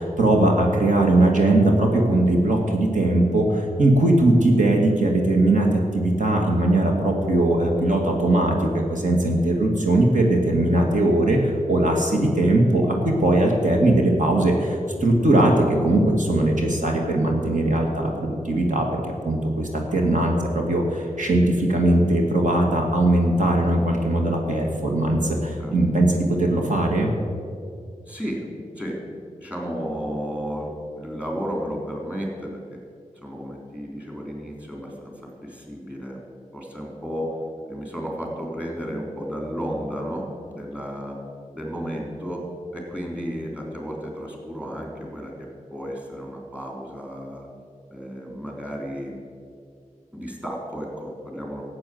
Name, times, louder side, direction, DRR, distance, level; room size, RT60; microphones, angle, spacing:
voice 1, 0.0-27.1, right 1 dB, 65° right, 0 dB, 2.0 m, -20 dB
voice 2, 28.1-28.5 28.8-29.0 29.4-32.8 33.2-36.2 36.5-37.3 37.7-41.2 41.5-42.4 42.7-47.5 47.9-49.2 50.1-51.6, equal, 10° right, -1 dB, 3.6 m, -33 dB
14.5 x 8.5 x 7.9 m, 2.3 s
wide cardioid pair, 105°, 14 cm